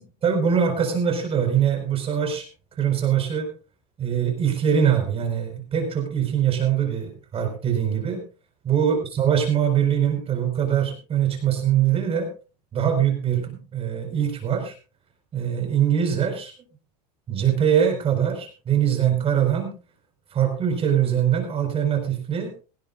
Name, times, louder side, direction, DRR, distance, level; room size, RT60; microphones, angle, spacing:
voice 1, 0.2-2.5 2.8-3.5 4.0-8.2 8.6-12.3 12.7-14.7 15.3-16.5 17.3-19.7 20.3-22.5, right 9 dB, 25° right, 5 dB, 4.5 m, -22 dB
18.0 x 17.5 x 2.4 m, 0.33 s
supercardioid pair, 135°, 21 cm